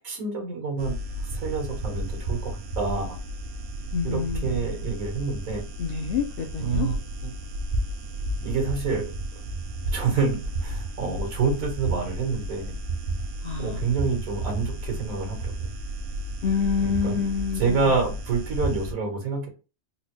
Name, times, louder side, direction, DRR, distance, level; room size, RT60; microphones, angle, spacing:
voice 1, 0.0-1.0 1.3-3.2 4.0-5.6 6.6-7.0 7.2-7.3 8.4-9.1 9.9-12.7 13.6-15.5 16.8-17.2 17.6-19.5, right 4 dB, 80° right, 2 dB, 1.7 m, -27 dB
sound 1, 0.8-18.9, right 1 dB, 55° right, 0.7 m, -32 dB
voice 2, 3.9-4.7 5.8-6.9 13.4-13.8 16.4-17.9, left 6 dB, 65° left, 2 dB, 0.5 m, -27 dB
4.0 x 2.1 x 3.0 m, 0.31 s
omnidirectional pair, 1.4 m